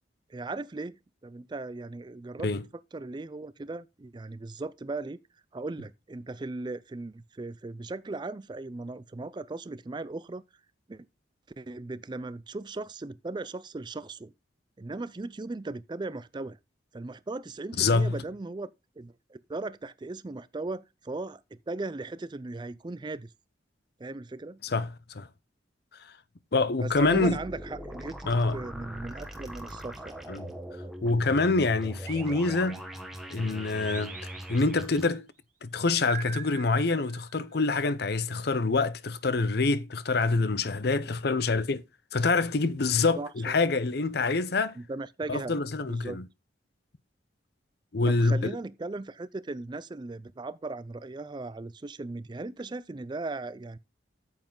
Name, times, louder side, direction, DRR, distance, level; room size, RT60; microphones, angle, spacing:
voice 1, 0.3-1.0 1.2-2.5 2.9-5.2 5.5-10.4 10.9-11.1 11.6-14.3 14.8-16.6 16.9-18.7 19.0-23.3 24.0-24.6 26.8-30.2 43.2-43.5 44.8-45.6 45.9-46.2 48.0-53.8, right 2 dB, 25° right, 0.4 m, -37 dB
voice 2, 17.8-18.1 24.6-24.9 25.1-25.3 26.5-27.4 28.3-28.6 30.3-30.5 31.0-32.8 33.3-34.2 34.5-35.3 35.6-41.8 42.1-44.8 45.3-46.2 47.9-48.5, left 3 dB, 55° left, 0.6 m, -26 dB
sound 1, 26.9-35.0, equal, ahead, 1.3 m, -41 dB
sound 2, 32.1-33.2 33.9-35.0 36.1-37.5, right 6 dB, 40° right, 2.2 m, -44 dB
9.0 x 7.5 x 3.8 m
head